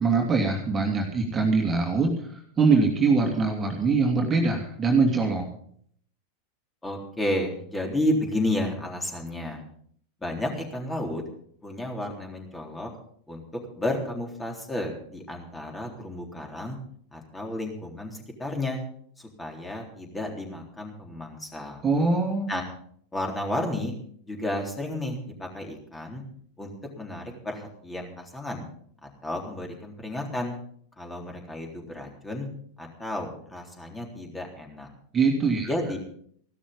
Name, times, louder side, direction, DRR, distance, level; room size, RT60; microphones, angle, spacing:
voice 1, 0.0-5.4 21.8-22.5 35.1-35.7, right 4 dB, 20° right, 2 dB, 2.6 m, -23 dB
voice 2, 6.8-9.6 10.2-11.2 11.6-12.9 13.3-13.4 13.8-16.8 17.1-18.8 19.2-21.8 22.5-22.6 23.1-23.9 24.3-26.2 26.6-28.6 29.0-30.6 31.0-32.5 32.8-34.9 35.6-36.0, left 1 dB, 10° left, 1 dB, 3.8 m, -32 dB
16.0 x 12.5 x 5.4 m, 0.63 s
figure-of-eight pair, 90°, 0 cm